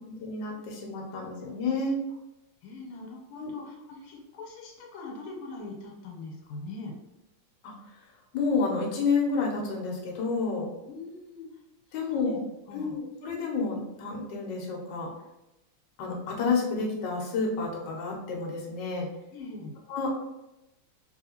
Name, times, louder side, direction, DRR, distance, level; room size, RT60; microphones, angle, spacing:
voice 1, 0.2-2.0 3.4-3.5 7.6-7.7 8.3-10.7 11.9-12.4 12.7-15.1 16.0-19.1 19.9-20.1, left 4 dB, 65° left, -1 dB, 1.3 m, -29 dB
voice 2, 2.6-7.0 10.9-11.5 11.9-12.4 12.7-13.0 19.3-19.7, left 3 dB, 85° left, -1 dB, 1.6 m, -42 dB
3.3 x 2.7 x 2.8 m, 0.91 s
omnidirectional pair, 2.4 m